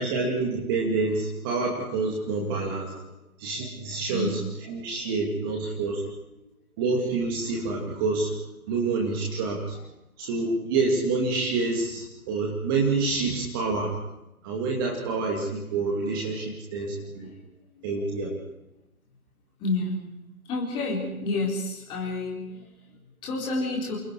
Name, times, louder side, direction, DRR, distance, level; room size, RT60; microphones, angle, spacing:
voice 1, 0.0-2.9 3.4-4.4 4.7-6.0 6.8-8.3 8.7-9.8 10.2-13.9 14.4-17.3 17.8-18.3, right 3 dB, 15° right, -1 dB, 2.6 m, -27 dB
voice 2, 2.8-3.2 3.9-4.4 5.0-5.1 16.2-16.3 16.9-17.4 17.7-17.9 19.6-20.0 20.4-24.0, left 2 dB, 10° left, -2 dB, 4.5 m, -31 dB
28.5 x 28.0 x 4.9 m, 0.91 s
figure-of-eight pair, 150°, 44 cm